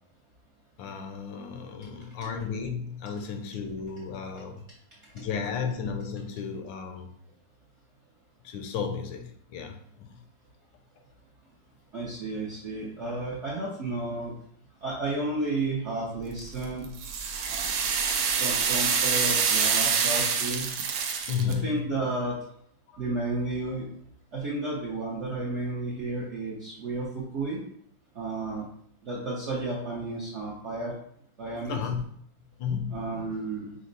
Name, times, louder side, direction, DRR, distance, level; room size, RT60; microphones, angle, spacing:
voice 1, 0.8-4.6 5.1-7.1 8.4-10.2 21.3-21.8 22.9-23.0 31.7-32.0 32.6-33.1, left 6 dB, 80° left, 5 dB, 1.3 m, -33 dB
voice 2, 11.9-14.3 14.8-16.9 17.5-17.8 18.3-20.7 21.5-22.4 23.0-23.9 24.3-27.6 28.1-28.7 29.0-31.0 31.4-31.9 32.9-33.8, right 2 dB, 65° right, -5 dB, 0.7 m, -32 dB
sound 1, 16.4-21.5, right 6 dB, 80° right, 1.3 m, -26 dB
5.2 x 2.0 x 3.8 m, 0.67 s
omnidirectional pair, 2.1 m